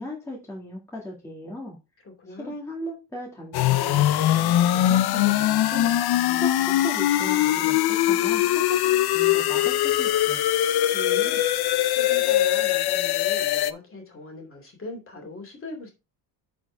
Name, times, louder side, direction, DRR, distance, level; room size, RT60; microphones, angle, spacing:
voice 1, 0.0-1.8 2.3-5.9 6.3-10.4, equal, 5° left, 2.0 m, -37 dB
voice 2, 2.0-2.5 10.9-15.9, left 2 dB, 30° left, 2.7 m, -40 dB
sound 1, 3.5-13.7, left 13 dB, 60° left, 0.6 m, -22 dB
sound 2, 6.4-12.4, right 5 dB, 40° right, 2.5 m, -51 dB
10.5 x 4.7 x 3.4 m
cardioid pair, 155°, 43 cm